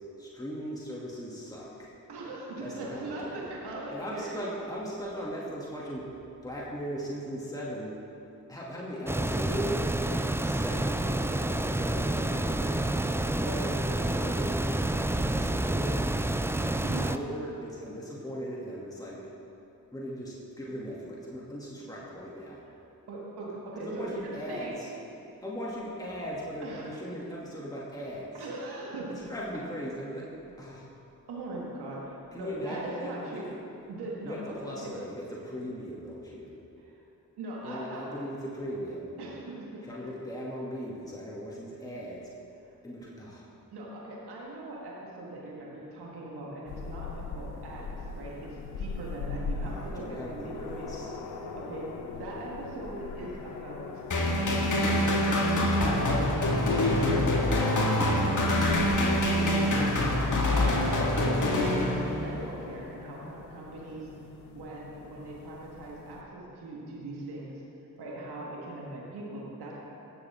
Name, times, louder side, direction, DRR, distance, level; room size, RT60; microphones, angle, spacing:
voice 1, 0.2-1.9 2.6-3.4 3.9-6.1 6.4-7.9 8.5-9.9 10.4-12.8 13.3-14.5 15.1-16.1 17.1-19.2 19.9-22.6 23.8-24.9 25.4-28.4 29.3-30.9 32.3-33.5 34.2-36.5 37.6-39.1 39.9-42.3 42.8-43.6 49.6-51.2, equal, 10° left, -5 dB, 2.5 m, -38 dB
voice 2, 2.1-4.6 10.6-10.8 13.5-13.8 14.1-14.3 14.9-15.0 16.6-17.1 23.1-24.8 26.6-26.9 28.3-29.1 31.3-33.5 33.9-34.9 36.8-37.0 37.4-38.1 39.2-40.1 42.7-42.8 43.7-50.9 51.6-54.0 54.8-55.6 55.9-56.9 57.4-61.8 62.1-64.3 64.5-67.6 68.0-69.8, right 2 dB, 80° right, -4 dB, 1.8 m, -40 dB
sound 1, 9.1-17.2, right 1 dB, 5° right, 0.4 m, -29 dB
sound 2, 46.7-66.2, left 4 dB, 85° left, 0.8 m, -42 dB
sound 3, 54.1-62.4, left 1 dB, 50° left, 2.0 m, -25 dB
17.5 x 7.0 x 3.7 m, 2.8 s
supercardioid pair, 40°, 39 cm